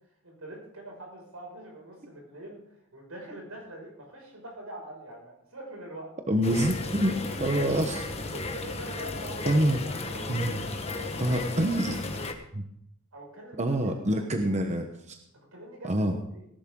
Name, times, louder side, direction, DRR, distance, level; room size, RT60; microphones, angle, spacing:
voice 1, 0.2-6.1 7.1-12.0 13.1-14.5 15.3-16.5, right 1 dB, 85° right, 0 dB, 6.1 m, -45 dB
voice 2, 6.3-8.0 9.5-9.8 10.3-10.6 11.2-12.0 12.5-12.6 13.6-15.2 15.8-16.2, right 1 dB, 35° right, 5 dB, 1.0 m, -26 dB
sound 1, 6.4-12.3, left 3 dB, 30° left, 1.3 m, -34 dB
18.5 x 11.0 x 3.8 m, 0.75 s
head